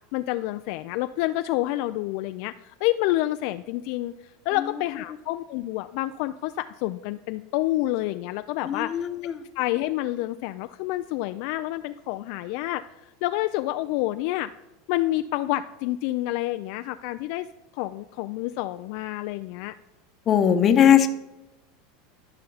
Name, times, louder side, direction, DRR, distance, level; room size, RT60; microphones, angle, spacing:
voice 1, 0.1-9.0 9.6-14.5 14.9-17.5 17.7-19.7, left 16 dB, 60° left, 10 dB, 0.3 m, -28 dB
voice 2, 8.6-9.4 20.3-21.1, left 9 dB, 35° left, 9 dB, 0.9 m, -19 dB
15.0 x 5.6 x 3.9 m, 0.99 s
supercardioid pair, 130°, 0 cm